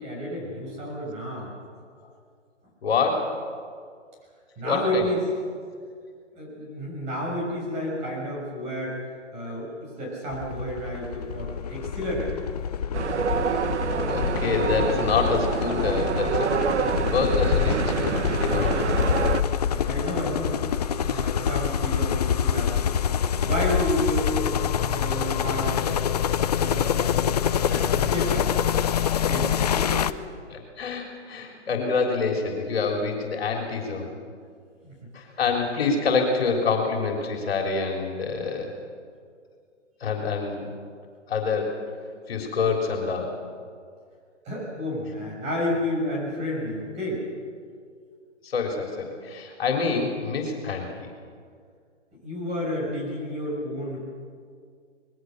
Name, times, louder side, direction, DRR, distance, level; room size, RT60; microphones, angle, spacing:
voice 1, 0.0-1.5 4.6-5.2 6.3-9.0 9.3-12.3 18.9-23.2 23.4-26.0 26.4-27.4 27.7-28.6 29.3-30.0 34.8-35.1 44.4-47.2 52.2-54.0, equal, 20° right, -3 dB, 6.9 m, -31 dB
voice 2, 2.8-3.4 4.6-5.1 9.4-9.6 14.1-16.5 17.1-18.8 19.3-19.4 19.8-19.9 21.0-21.2 23.2-23.3 30.5-34.1 35.1-38.7 40.0-40.7 41.3-41.8 42.3-43.4 48.4-51.1, left 4 dB, 55° left, 2 dB, 3.8 m, -27 dB
sound 1, 10.3-30.1, left 8 dB, 35° left, 0.6 m, -26 dB
sound 2, 12.9-19.4, right 6 dB, 65° right, 1.4 m, -27 dB
26.5 x 21.0 x 6.6 m, 2.1 s
hypercardioid pair, 160°, 37 cm